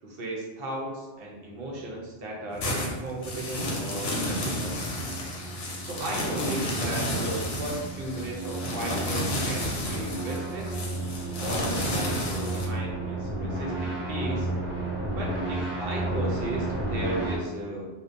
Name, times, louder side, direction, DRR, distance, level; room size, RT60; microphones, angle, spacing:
voice 1, 0.0-4.8 5.8-10.8 11.4-14.5 15.1-17.9, right 1 dB, 60° right, -2 dB, 0.7 m, -35 dB
sound 1, 2.5-12.7, left 1 dB, 65° left, 0.8 m, -31 dB
sound 2, 3.0-17.3, right 2 dB, 15° right, 0.4 m, -33 dB
2.6 x 2.1 x 2.5 m, 1.2 s
omnidirectional pair, 1.2 m